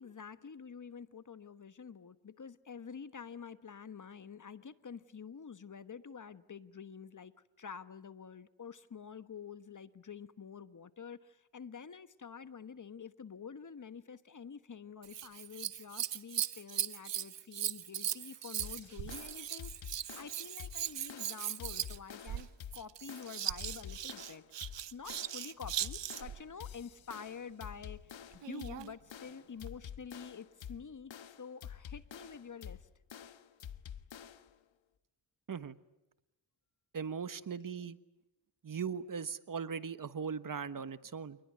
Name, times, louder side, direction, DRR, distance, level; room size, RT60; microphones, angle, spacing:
voice 1, 0.0-7.3 7.6-19.7 20.2-22.5 22.7-32.9, left 6 dB, 40° left, 13 dB, 1.3 m, -48 dB
Scissors, 15.0-26.4 28.3-29.0 29.7-29.8, right 11 dB, 65° right, 1.0 m, -39 dB
sound 1, 18.6-34.6, left 9 dB, 70° left, 1.4 m, -49 dB
voice 2, 36.9-38.0 38.6-41.4, right 6 dB, 45° right, 14 dB, 1.3 m, -39 dB
28.0 x 20.5 x 9.5 m, 0.96 s
cardioid pair, 65°, 47 cm